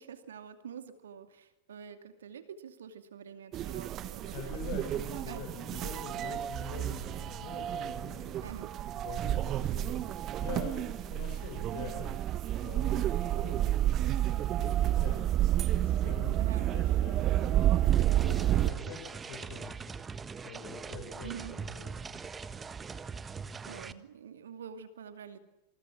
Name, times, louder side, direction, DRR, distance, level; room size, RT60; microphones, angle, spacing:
voice 1, 0.0-4.7 5.1-5.4 8.4-8.7 16.4-16.7 21.2-21.5 23.6-25.4, right 7 dB, 65° right, 8 dB, 2.4 m, -46 dB
sound 1, 3.5-18.7, right 12 dB, 35° right, 1.4 m, -30 dB
voice 2, 4.3-8.5 8.9-15.3 15.6-19.9 20.4-22.2, left 7 dB, 50° left, 2 dB, 5.8 m, -45 dB
sound 2, 17.9-23.9, right 5 dB, 15° right, 1.4 m, -42 dB
28.5 x 28.0 x 6.2 m, 0.97 s
figure-of-eight pair, 90°, 0 cm